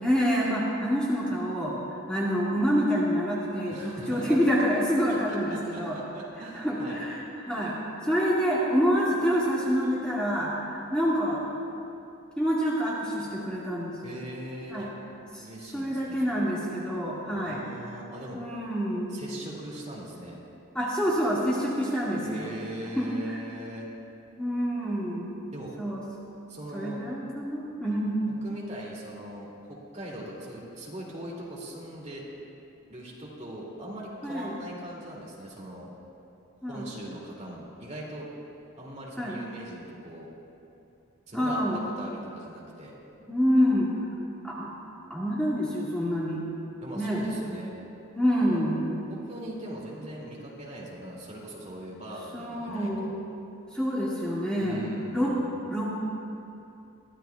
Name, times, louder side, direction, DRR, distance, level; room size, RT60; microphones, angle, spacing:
voice 1, 0.0-6.0 6.5-7.7 8.0-11.4 12.4-14.0 14.7-14.9 15.3-15.5 15.7-17.6 18.3-19.2 20.7-22.5 23.0-23.4 24.4-25.3 25.8-26.0 26.7-28.3 34.2-34.6 36.6-36.9 39.2-39.4 41.3-41.8 43.3-43.9 44.4-44.7 45.1-46.5 46.9-47.3 48.1-48.9 52.3-53.2 53.7-54.8 55.1-55.3 55.7-56.0, equal, 5° left, -8 dB, 1.8 m, -27 dB
voice 2, 3.7-4.4 5.1-7.0 14.0-14.9 15.4-16.5 17.3-18.4 19.1-20.4 22.2-23.9 25.5-25.7 26.5-27.0 28.3-32.2 32.9-35.9 36.7-38.3 38.8-40.3 41.3-42.9 46.8-47.7 48.5-48.6 49.1-53.1 54.6-55.5, right 1 dB, 30° right, -4 dB, 2.3 m, -40 dB
23.0 x 14.0 x 2.3 m, 2.7 s
head